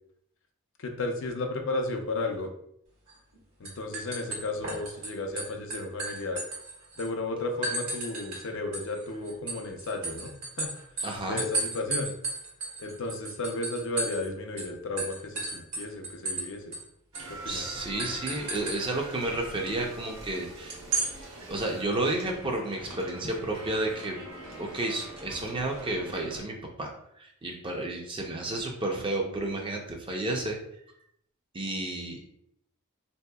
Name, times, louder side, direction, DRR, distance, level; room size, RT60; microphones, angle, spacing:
voice 1, 0.8-2.5 3.6-6.4 7.0-10.7 11.3-12.1 12.8-16.8 17.3-17.7, left 2 dB, 55° left, 4 dB, 0.5 m, -33 dB
sound 1, 3.1-3.4 3.6-5.1 5.4-7.1 7.6-8.4 8.7-14.3 14.6-14.7 15.0-16.5 16.7-16.8 17.1-17.3 18.0-18.8 20.7-21.1, right 3 dB, 85° right, 1.4 m, -33 dB
voice 2, 11.0-11.4 17.5-20.8 21.5-24.1 24.6-30.6 31.5-32.2, right 2 dB, 20° right, 1 dB, 0.4 m, -31 dB
sound 2, 17.1-26.4, right 1 dB, 70° right, 0.7 m, -44 dB
3.9 x 2.7 x 2.2 m, 0.73 s
head